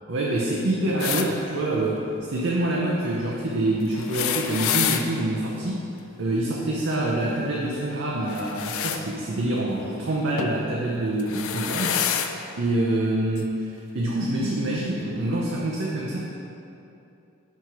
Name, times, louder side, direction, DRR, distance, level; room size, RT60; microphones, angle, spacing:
voice 1, 0.1-5.8 6.2-12.0 12.6-16.2, right 1 dB, 55° right, -4 dB, 0.6 m, -26 dB
sound 1, 1.0-1.3 3.9-5.0 8.3-9.0 10.4-10.6 11.2-12.3 13.4-13.5 14.7-14.8, left 9 dB, 70° left, 0.4 m, -27 dB
5.3 x 4.7 x 5.9 m, 2.8 s
head